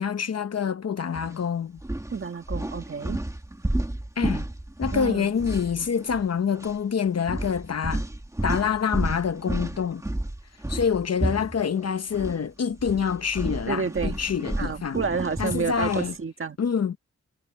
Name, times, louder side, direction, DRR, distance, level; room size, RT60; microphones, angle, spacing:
voice 1, 0.0-1.8 4.2-4.5 4.8-8.0 8.4-10.0 10.7-15.0 15.4-16.1 16.6-17.0, left 7 dB, 55° left, 0.8 m, -26 dB
sound 1, 1.1-1.4 1.8-6.3 6.5-6.8 7.3-12.4 12.7-16.1, right 1 dB, 10° right, 1.5 m, -31 dB
voice 2, 2.1-3.2 4.9-5.3 13.7-14.2 14.6-16.6, right 5 dB, 40° right, 1.6 m, -29 dB
wide cardioid pair, 150°, 31 cm